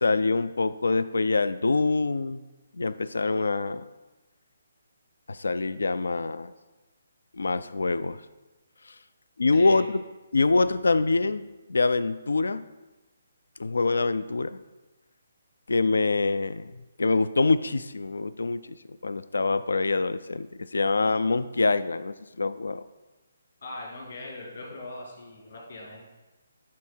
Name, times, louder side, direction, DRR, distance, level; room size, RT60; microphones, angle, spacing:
voice 1, 0.0-2.4 2.8-3.8 5.3-6.5 7.3-8.2 9.4-9.9 10.3-11.4 11.7-12.6 13.6-14.6 15.7-16.7 17.0-18.8 19.0-22.8, left 3 dB, 80° left, 14 dB, 0.3 m, -25 dB
voice 2, 9.5-9.8 23.6-26.1, left 2 dB, 65° left, -2 dB, 2.4 m, -40 dB
10.5 x 3.6 x 4.4 m, 1.1 s
hypercardioid pair, 150°, 0 cm